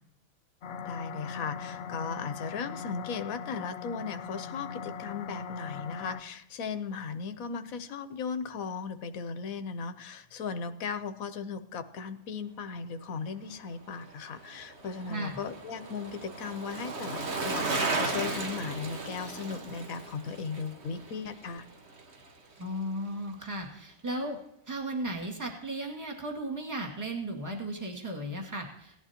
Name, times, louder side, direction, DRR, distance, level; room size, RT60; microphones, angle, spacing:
sound 1, 0.6-6.2, left 6 dB, 60° left, 0.7 m, -40 dB
voice 1, 0.8-21.7, left 5 dB, 90° left, 10 dB, 1.3 m, -37 dB
Bicycle, 13.9-22.3 22.6-22.7, right 3 dB, 55° right, 1.7 m, -36 dB
voice 2, 22.6-24.4 24.7-29.0, right 1 dB, 15° right, 0 dB, 2.1 m, -35 dB
18.0 x 11.5 x 2.9 m, 0.79 s
omnidirectional pair, 1.4 m